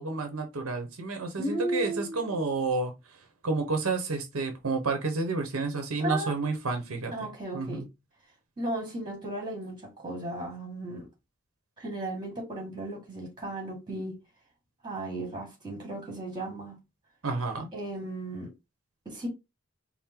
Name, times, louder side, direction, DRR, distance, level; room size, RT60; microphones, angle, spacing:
voice 1, 0.0-2.9 3.4-7.1 7.5-7.8 17.2-17.7, right 3 dB, 85° right, 0.9 m, -30 dB
voice 2, 1.4-2.3 6.0-6.3 7.1-7.8 8.6-11.1 11.8-14.2 14.8-16.7 17.7-18.5 19.0-19.3, right 2 dB, 20° right, 1.8 m, -35 dB
4.4 x 2.1 x 3.7 m
head